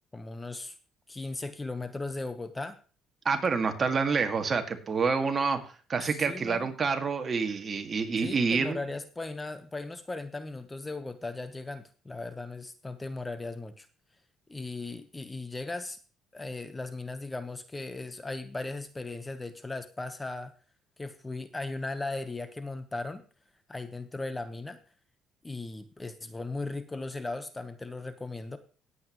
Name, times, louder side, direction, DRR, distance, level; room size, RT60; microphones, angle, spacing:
voice 1, 0.1-0.7 1.1-2.8 6.0-6.7 8.2-13.9 14.5-16.0 16.3-20.5 21.0-23.2 23.7-24.8 25.4-28.6, left 2 dB, 15° left, 10 dB, 1.1 m, -37 dB
voice 2, 3.3-5.6 5.9-8.8, right 5 dB, 35° right, 6 dB, 2.0 m, -27 dB
18.0 x 8.4 x 3.1 m, 0.38 s
supercardioid pair, 90°, 0 cm